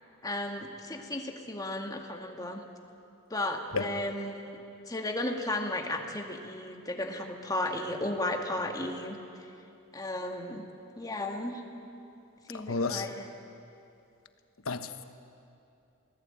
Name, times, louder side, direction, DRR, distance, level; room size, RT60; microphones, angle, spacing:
voice 1, 0.2-2.6 3.3-9.5 9.9-10.6 11.0-11.6 12.5-13.3, left 1 dB, 20° left, 3 dB, 2.0 m, -34 dB
voice 2, 12.7-13.0 14.7-15.0, left 3 dB, 85° left, 9 dB, 1.3 m, -31 dB
27.5 x 18.0 x 8.9 m, 2.6 s
head